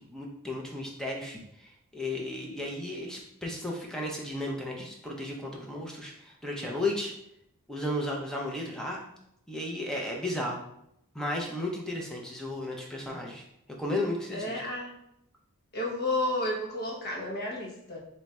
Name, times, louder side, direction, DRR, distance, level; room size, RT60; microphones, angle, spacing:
voice 1, 0.0-7.1 7.7-9.0 9.5-10.6 11.1-13.4 13.8-14.6, left 1 dB, 5° left, -2 dB, 0.5 m, -34 dB
voice 2, 14.3-14.9 15.7-18.0, left 1 dB, 45° left, -3 dB, 0.9 m, -31 dB
3.1 x 2.4 x 4.1 m, 0.78 s
head